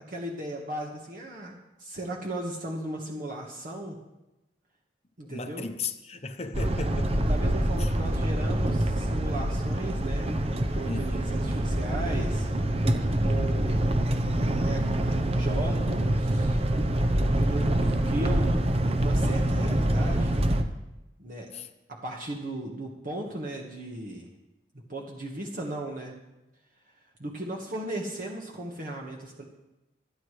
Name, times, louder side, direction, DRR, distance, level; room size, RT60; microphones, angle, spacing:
voice 1, 0.1-4.0 5.2-5.7 7.3-10.3 10.7-12.5 13.2-13.8 14.6-14.9 15.3-16.6 17.3-20.3 21.2-21.5 21.9-24.3 24.9-26.1 27.2-29.4, right 1 dB, 50° right, 1.5 m, -36 dB
voice 2, 5.2-7.2 7.8-7.9 10.9-11.4 21.5-21.7, left 4 dB, 35° left, 0.9 m, -36 dB
sound 1, 6.5-20.6, right 1 dB, 35° right, 0.8 m, -25 dB
25.5 x 9.5 x 3.3 m
head